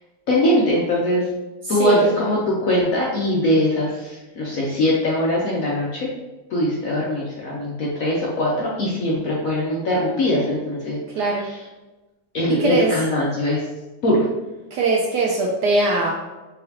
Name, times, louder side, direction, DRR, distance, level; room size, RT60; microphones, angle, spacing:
voice 1, 0.3-1.3 1.7-6.1 6.5-11.6 12.3-13.6 14.0-14.3, left 1 dB, 65° left, -5 dB, 0.9 m, -21 dB
voice 2, 11.1-11.4 12.6-12.9 14.7-16.1, right 3 dB, 75° right, -1 dB, 1.0 m, -20 dB
4.1 x 3.7 x 2.8 m, 1.1 s
omnidirectional pair, 2.2 m